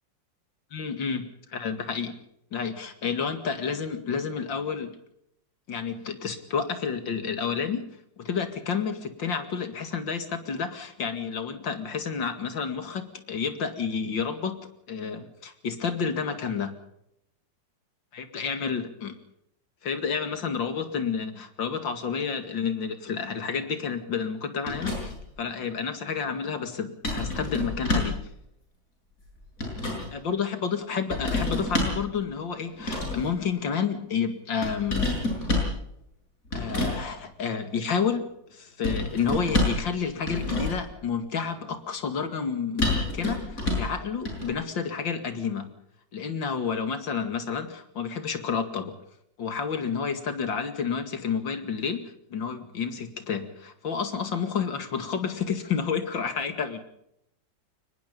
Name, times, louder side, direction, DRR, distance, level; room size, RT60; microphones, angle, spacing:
voice 1, 0.7-2.2 2.5-4.9 5.7-7.8 8.2-16.8 18.1-19.2 19.8-28.3 30.1-35.1 36.5-45.7 46.1-49.0 49.4-56.8, left 6 dB, 80° left, 9 dB, 2.9 m, -30 dB
sound 1, 24.7-25.3 27.0-28.2 29.2-30.1 31.1-32.1 32.8-33.3 34.6-35.8 36.5-37.0 38.8-39.9 40.2-40.9 42.8-43.9 44.3-44.5, left 2 dB, 45° left, 7.9 m, -28 dB
23.5 x 20.5 x 5.4 m, 0.77 s
omnidirectional pair, 2.0 m